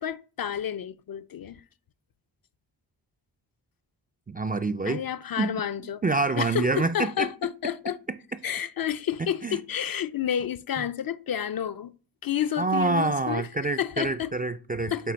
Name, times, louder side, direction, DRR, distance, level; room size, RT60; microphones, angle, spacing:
voice 1, 0.0-1.6 4.9-6.0 6.4-8.0 8.4-11.9 12.2-13.5 13.8-14.3 14.9-15.1, left 9 dB, 50° left, 0.4 m, -30 dB
voice 2, 4.3-5.0 5.4-5.6 6.0-7.3 8.1-8.2 9.4-9.6 12.6-15.1, right 3 dB, 20° right, 0.3 m, -26 dB
7.3 x 2.7 x 5.2 m
cardioid pair, 45°, 47 cm